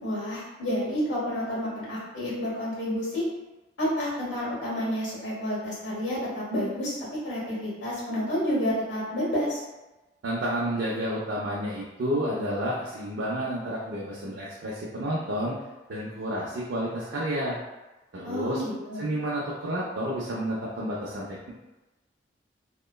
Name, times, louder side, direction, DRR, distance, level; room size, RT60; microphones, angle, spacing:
voice 1, 0.0-3.2 3.8-6.9 7.2-9.6 18.2-19.1, equal, 90° left, -7 dB, 1.2 m, -30 dB
voice 2, 10.2-15.6 15.9-17.6 18.1-18.6 19.0-21.5, equal, 85° right, -6 dB, 0.5 m, -30 dB
2.9 x 2.1 x 2.2 m, 1.1 s
head